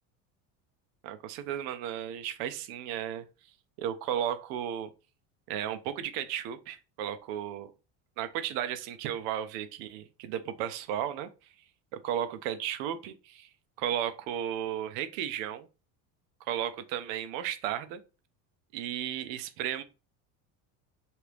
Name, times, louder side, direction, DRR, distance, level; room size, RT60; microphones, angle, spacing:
voice 1, 1.0-3.3 3.8-4.9 5.5-7.7 8.2-11.3 11.9-13.5 13.8-15.7 16.4-18.0 18.7-19.8, right 10 dB, 80° right, 0.6 m, -34 dB
2.8 x 2.5 x 3.3 m
cardioid pair, 125°, 39 cm